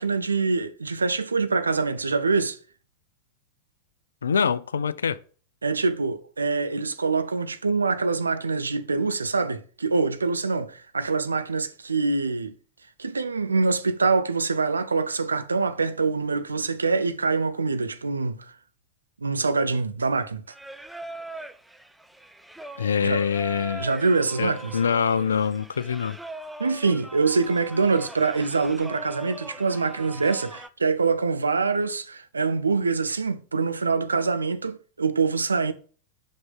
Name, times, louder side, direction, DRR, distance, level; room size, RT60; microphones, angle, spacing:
voice 1, 0.0-2.6 5.6-12.5 13.0-18.4 19.2-20.4 23.0-23.2 23.8-24.8 26.6-35.7, right 4 dB, 75° right, 0.6 m, -25 dB
voice 2, 4.2-5.2 22.8-23.9 24.4-26.2, left 6 dB, 70° left, 0.4 m, -24 dB
Singing, 20.5-30.7, right 1 dB, 5° right, 0.4 m, -41 dB
5.6 x 5.2 x 3.7 m
figure-of-eight pair, 90°, 0 cm